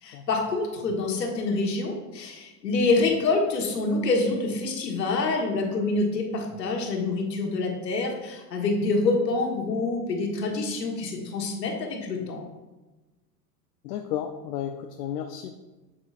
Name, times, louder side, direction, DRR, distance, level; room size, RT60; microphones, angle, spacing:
voice 1, 0.0-12.4, left 3 dB, 90° left, 1 dB, 1.6 m, -26 dB
voice 2, 13.8-15.5, left 10 dB, 70° left, 5 dB, 0.7 m, -33 dB
7.9 x 7.6 x 2.5 m, 1.1 s
hypercardioid pair, 95°, 48 cm